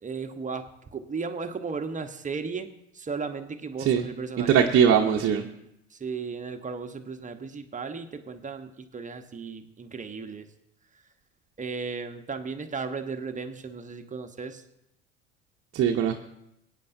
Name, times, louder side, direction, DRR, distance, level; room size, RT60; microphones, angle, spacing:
voice 1, 0.0-2.7 2.9-4.9 5.9-10.5 11.6-14.6, right 5 dB, 20° right, 6 dB, 1.1 m, -35 dB
voice 2, 4.4-5.5 15.7-16.2, right 8 dB, 35° right, 1 dB, 1.0 m, -21 dB
21.5 x 9.3 x 2.7 m, 0.82 s
hypercardioid pair, 75°, 38 cm